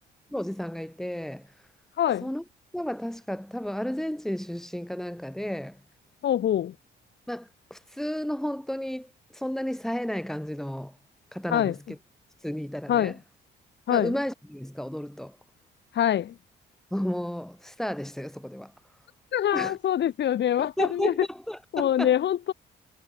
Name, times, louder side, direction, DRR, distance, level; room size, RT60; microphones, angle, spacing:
voice 1, 0.3-1.5 2.2-2.4 2.7-5.8 7.3-10.9 11.3-11.7 12.4-13.1 13.9-15.3 16.9-18.7 19.5-19.7 20.6-22.1, equal, ahead, 1.8 m, -32 dB
voice 2, 2.0-2.3 6.2-6.7 11.5-11.8 12.9-13.2 13.9-14.2 15.9-16.3 19.3-21.3 21.7-22.5, left 11 dB, 60° left, 1.3 m, -24 dB
cardioid pair, 90°, 20 cm